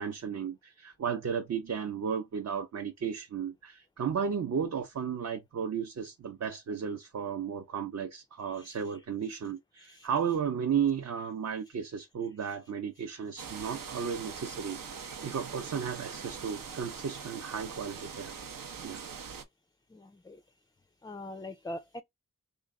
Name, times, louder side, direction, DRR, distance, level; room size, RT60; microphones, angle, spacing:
voice 1, 0.0-18.3 18.8-19.0, right 7 dB, 55° right, 0.6 m, -34 dB
voice 2, 9.8-10.1 19.9-20.4 21.0-22.0, left 1 dB, 15° left, 0.3 m, -42 dB
sound 1, 13.4-19.4, right 6 dB, 85° right, 0.8 m, -42 dB
3.1 x 2.4 x 3.6 m
wide cardioid pair, 80°, 32 cm